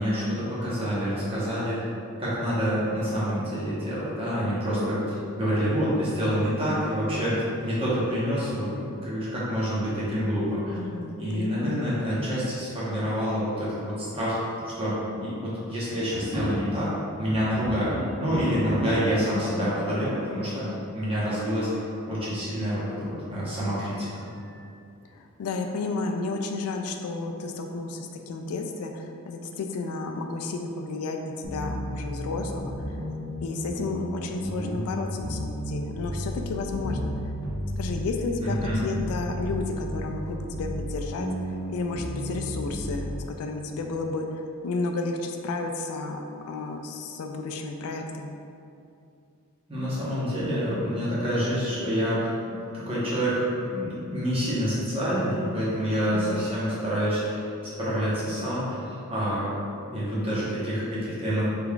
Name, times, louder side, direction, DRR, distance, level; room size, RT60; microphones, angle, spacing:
voice 1, 0.0-1.9 2.2-10.8 11.2-14.4 14.6-21.7 22.1-24.3 38.4-38.8 49.7-52.3 52.7-57.5 57.8-59.5 59.9-61.5, equal, 25° right, -9 dB, 1.0 m, -27 dB
voice 2, 10.7-11.9 19.6-20.0 25.4-32.7 33.4-37.0 37.8-41.3 41.7-43.1 43.4-48.4 56.1-56.5, left 3 dB, 70° left, 5 dB, 0.3 m, -32 dB
sound 1, 16.1-17.0 17.3-19.1 19.8-19.9 20.1-20.2 20.9-21.8 23.6-23.7 24.2-24.7 25.1-25.2 25.7-26.6, equal, 85° right, 1.0 m, -36 dB
sound 2, 31.4-43.2, equal, 15° left, 0.7 m, -33 dB
3.7 x 3.3 x 2.3 m, 2.5 s
head